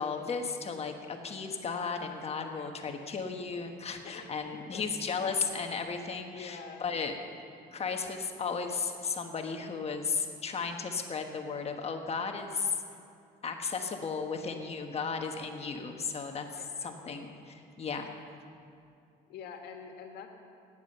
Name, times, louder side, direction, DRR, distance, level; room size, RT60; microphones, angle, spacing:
voice 1, 0.0-7.1 7.7-12.8 13.4-17.3 17.8-18.1, left 5 dB, 35° left, 4 dB, 1.3 m, -35 dB
voice 2, 6.1-6.8 16.6-17.3 19.3-20.3, left 7 dB, 75° left, 4 dB, 1.8 m, -47 dB
16.5 x 9.8 x 6.7 m, 2.5 s
cardioid pair, 110°, 17 cm